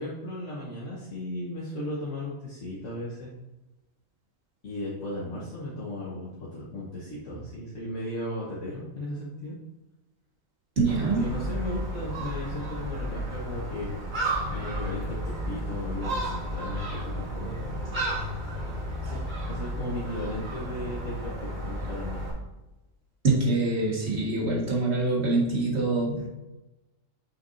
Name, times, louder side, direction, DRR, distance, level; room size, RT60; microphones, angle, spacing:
voice 1, 0.0-3.3 4.6-9.6 11.2-13.9 14.4-17.7 19.0-19.2 19.5-22.2, left 1 dB, 65° left, -7 dB, 1.8 m, -36 dB
voice 2, 10.8-11.4 23.2-26.3, right 3 dB, 55° right, -3 dB, 2.0 m, -25 dB
Gull seagull, 10.9-22.3, right 1 dB, 70° right, 3.0 m, -33 dB
8.0 x 6.0 x 2.7 m, 1.0 s
omnidirectional pair, 1.4 m